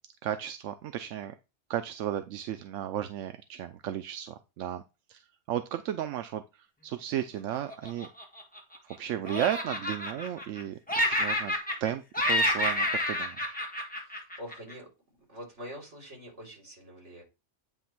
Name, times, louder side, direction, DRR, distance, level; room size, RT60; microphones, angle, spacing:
voice 1, 0.2-1.3 1.7-4.8 5.1-8.1 9.0-10.8 11.1-11.5 11.8-13.6, right 11 dB, 90° right, 9 dB, 0.9 m, -34 dB
Laughter, 7.7-8.9 9.3-10.6 10.9-11.9 12.1-14.7, left 1 dB, 5° left, 1.4 m, -29 dB
voice 2, 14.0-14.9 15.3-17.2, equal, 70° right, -1 dB, 3.8 m, -45 dB
9.3 x 3.1 x 5.9 m, 0.28 s
omnidirectional pair, 1.2 m